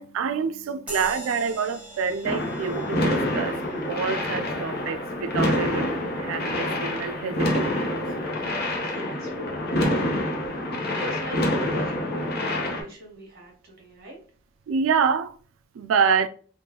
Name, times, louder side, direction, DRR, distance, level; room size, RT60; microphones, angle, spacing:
voice 1, 0.0-8.0 14.7-15.3 15.7-16.3, right 6 dB, 90° right, 0.3 m, -27 dB
sound 1, 0.9-8.8, right 1 dB, 5° right, 1.3 m, -44 dB
sound 2, 2.2-12.8, left 1 dB, 55° left, 0.8 m, -27 dB
voice 2, 8.7-14.2, right 1 dB, 50° right, 1.4 m, -42 dB
3.5 x 2.3 x 2.8 m
head